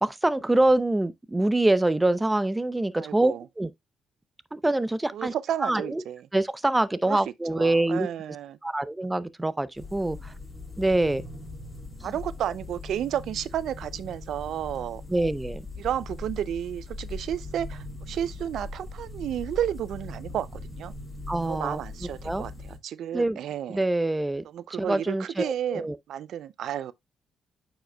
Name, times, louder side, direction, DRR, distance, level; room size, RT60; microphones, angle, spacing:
voice 1, 0.0-3.7 4.5-5.3 5.6-6.0 6.3-8.1 8.6-10.3 10.8-11.2 12.0-12.1 15.1-15.6 21.3-21.8 22.2-22.4 23.1-23.4 23.7-24.4 24.8-26.0, right 2 dB, 10° right, 0.6 m, -25 dB
voice 2, 3.0-3.4 5.1-6.2 7.1-7.2 7.5-8.6 12.0-15.0 15.8-20.5 20.7-20.9 21.4-23.8 24.5-26.9, right 10 dB, 70° right, 0.4 m, -32 dB
sound 1, 9.7-22.8, left 2 dB, 15° left, 4.9 m, -40 dB
8.9 x 5.0 x 2.2 m
cardioid pair, 90°, 0 cm